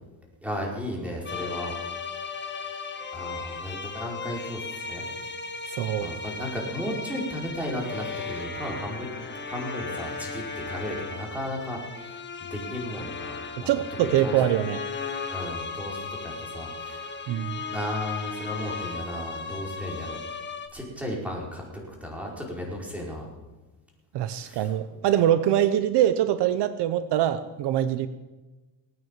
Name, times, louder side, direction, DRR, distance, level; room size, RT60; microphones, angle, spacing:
voice 1, 0.4-1.7 3.1-5.0 6.0-9.1 9.4-13.7 14.0-14.4 15.3-17.3 17.7-20.2 20.7-23.3 24.3-24.8, left 1 dB, 5° right, -2 dB, 4.8 m, -35 dB
sound 1, 1.3-20.7, left 4 dB, 25° left, 1.7 m, -36 dB
voice 2, 5.7-6.2 13.6-14.8 17.3-17.6 24.1-28.1, right 11 dB, 70° right, 13 dB, 0.9 m, -24 dB
19.0 x 9.4 x 7.3 m, 1.2 s
cardioid pair, 120°, 42 cm